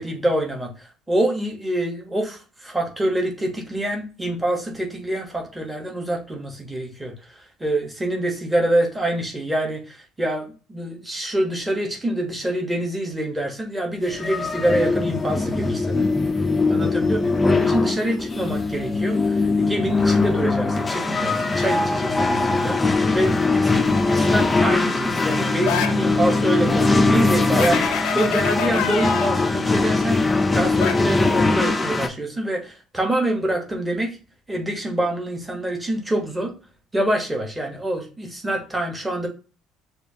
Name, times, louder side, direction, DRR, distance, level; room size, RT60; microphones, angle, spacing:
voice 1, 0.0-16.1 16.7-34.2 34.5-36.5 36.9-39.3, right 1 dB, 5° right, 1 dB, 0.8 m, -26 dB
sound 1, 14.1-32.1, left 3 dB, 10° left, 0.3 m, -21 dB
sound 2, 25.7-26.0 27.6-29.3 30.8-30.9, left 8 dB, 75° left, 0.5 m, -26 dB
6.7 x 2.3 x 2.6 m, 0.34 s
cardioid pair, 175°, 0 cm